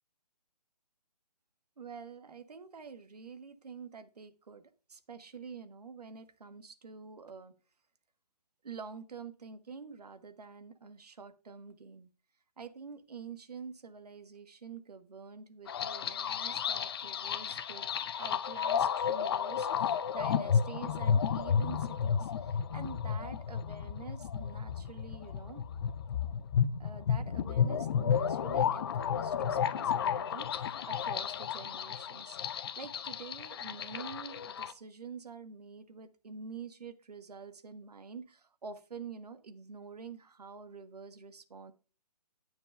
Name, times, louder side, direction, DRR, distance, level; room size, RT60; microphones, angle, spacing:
voice 1, 1.8-7.5 8.6-12.1 12.6-17.9 18.2-25.6 26.8-32.4 32.8-41.7, right 5 dB, 70° right, 12 dB, 1.4 m, -47 dB
sound 1, 15.7-34.7, left 7 dB, 35° left, 0.6 m, -32 dB
9.4 x 4.6 x 6.7 m, 0.34 s
figure-of-eight pair, 145°, 21 cm